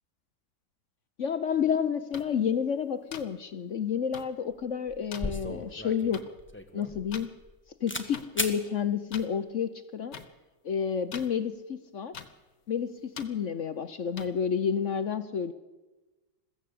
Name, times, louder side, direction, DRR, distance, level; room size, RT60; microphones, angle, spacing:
voice 1, 1.2-6.2 6.7-7.3 7.8-10.2 10.6-12.1 12.7-15.5, left 7 dB, 55° left, 11 dB, 1.0 m, -30 dB
sound 1, 2.1-2.2 3.1-3.2 4.1-4.2 5.1-5.2 6.1-6.2 7.1-7.3 8.1-8.2 9.1-9.3 10.1-10.2 11.1-11.3 12.1-12.3 13.1-13.3 14.2-14.3, left 7 dB, 75° left, 1.9 m, -41 dB
sound 2, 4.5-4.6 4.9-7.5 7.9-8.1 8.4-8.6, left 1 dB, 5° left, 1.3 m, -35 dB
21.5 x 15.0 x 8.5 m, 1.2 s
omnidirectional pair, 1.9 m